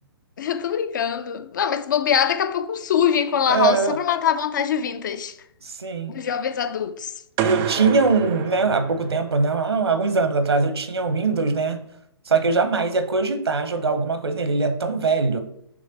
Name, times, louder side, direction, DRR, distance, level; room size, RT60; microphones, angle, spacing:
voice 1, 0.4-5.4 6.1-7.1, left 8 dB, 45° left, 0.5 m, -23 dB
voice 2, 3.5-4.0 5.6-6.2 7.4-11.8 12.3-15.4, right 4 dB, 70° right, 0.9 m, -22 dB
sound 1, 7.4-9.5, right 11 dB, 20° right, 0.4 m, -29 dB
6.6 x 3.2 x 5.8 m
figure-of-eight pair, 125°, 14 cm